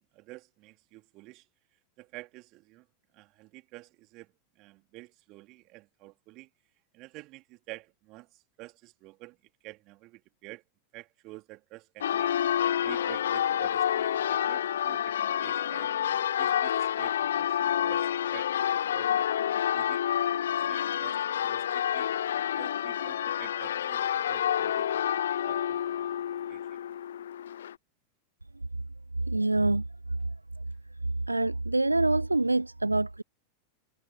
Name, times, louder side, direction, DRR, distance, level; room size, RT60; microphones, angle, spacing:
voice 1, 0.0-1.4 2.0-2.9 3.1-6.5 6.9-9.4 9.6-10.6 10.9-12.3 12.8-15.9 16.4-18.5 18.8-19.1 19.7-20.0 20.4-22.1 22.5-25.0 25.4-25.8 26.3-26.8, right 21 dB, 40° right, 2.8 m, -49 dB
Church bell, 12.0-27.7, left 10 dB, 65° left, 0.6 m, -28 dB
voice 2, 29.3-29.8 31.3-33.2, right 2 dB, 85° right, 0.4 m, -25 dB
figure-of-eight pair, 90°, 0 cm